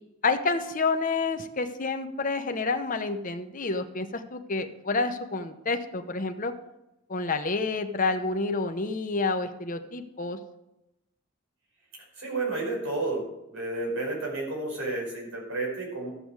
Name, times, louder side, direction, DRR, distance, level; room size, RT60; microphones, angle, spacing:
voice 1, 0.2-6.5 7.1-10.4, left 3 dB, 40° left, 7 dB, 1.0 m, -29 dB
voice 2, 12.2-13.2 13.5-16.1, right 2 dB, 90° right, -2 dB, 5.1 m, -31 dB
13.5 x 7.9 x 4.8 m, 0.90 s
head